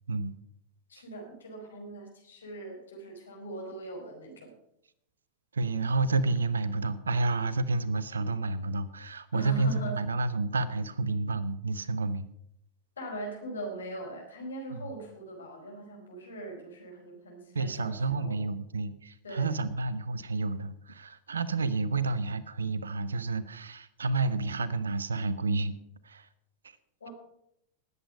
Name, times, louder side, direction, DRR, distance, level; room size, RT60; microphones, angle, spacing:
voice 1, 0.9-4.5 9.3-9.9 13.0-18.4 19.2-19.5 27.0-27.1, right 2 dB, 70° left, 1 dB, 4.8 m, -41 dB
voice 2, 5.5-12.3 14.7-14.9 17.5-25.8 26.0-26.3 26.6-26.8, right 3 dB, 70° right, 16 dB, 0.9 m, -30 dB
19.0 x 8.3 x 5.4 m, 0.75 s
figure-of-eight pair, 90°, 0 cm